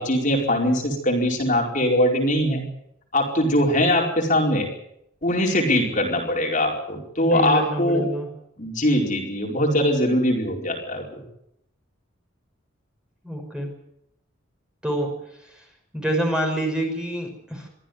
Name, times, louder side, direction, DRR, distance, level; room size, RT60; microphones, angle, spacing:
voice 1, 0.0-2.6 3.1-4.7 5.2-8.0 8.6-11.2, left 1 dB, 40° left, 0 dB, 4.7 m, -22 dB
voice 2, 7.2-8.3 13.2-13.7 14.8-15.1 15.4-15.7 15.9-17.7, right 1 dB, 5° right, 1 dB, 5.8 m, -27 dB
24.0 x 14.5 x 9.5 m, 0.78 s
head